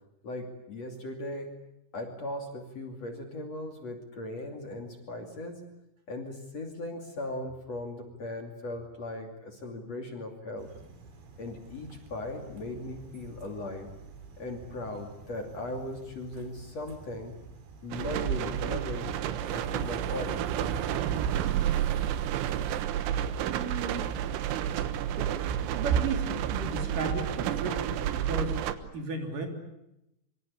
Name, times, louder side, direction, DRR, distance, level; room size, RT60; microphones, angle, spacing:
voice 1, 0.2-1.5 1.9-5.6 6.1-10.7 11.4-13.9 14.4-17.3 17.8-19.1 19.4-20.4, left 1 dB, 40° left, 3 dB, 3.3 m, -38 dB
sound 1, 10.6-22.9, right 4 dB, 70° right, 5.6 m, -50 dB
sound 2, 17.9-28.7, right 10 dB, 90° right, 3.7 m, -30 dB
voice 2, 23.3-24.2 24.9-29.5, right 3 dB, 50° right, 4 dB, 4.6 m, -36 dB
25.5 x 25.5 x 8.6 m, 0.87 s
omnidirectional pair, 5.2 m